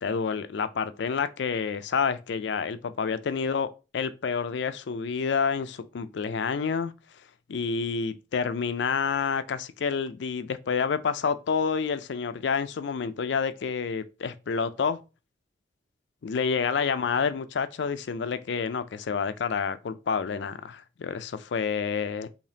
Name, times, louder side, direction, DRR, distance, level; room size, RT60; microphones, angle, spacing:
voice 1, 0.0-6.9 7.5-15.0 16.2-22.3, left 6 dB, 70° left, 0.4 m, -28 dB
5.0 x 2.8 x 2.7 m
head